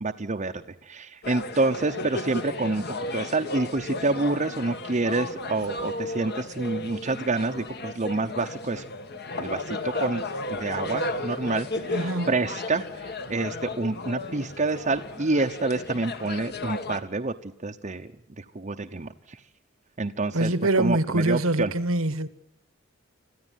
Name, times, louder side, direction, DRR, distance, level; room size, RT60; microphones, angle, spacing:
voice 1, 0.0-2.8 3.1-8.8 9.3-10.2 10.5-18.1 18.4-19.4 20.0-21.7, right 3 dB, 35° right, 0.9 m, -28 dB
sound 1, 1.2-17.0, left 2 dB, 50° left, 1.8 m, -34 dB
voice 2, 11.9-12.4 20.3-22.3, right 2 dB, 80° right, 1.5 m, -24 dB
26.0 x 15.0 x 9.2 m
head